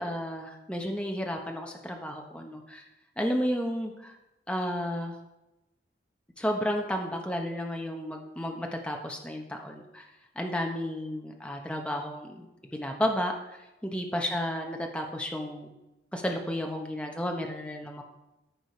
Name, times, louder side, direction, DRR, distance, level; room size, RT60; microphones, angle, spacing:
voice 1, 0.0-2.8 3.2-4.1 4.5-5.2 6.4-10.0 10.4-13.3 13.8-15.7 16.1-18.0, equal, 5° left, 2 dB, 1.1 m, -32 dB
13.5 x 5.0 x 5.0 m, 0.95 s
head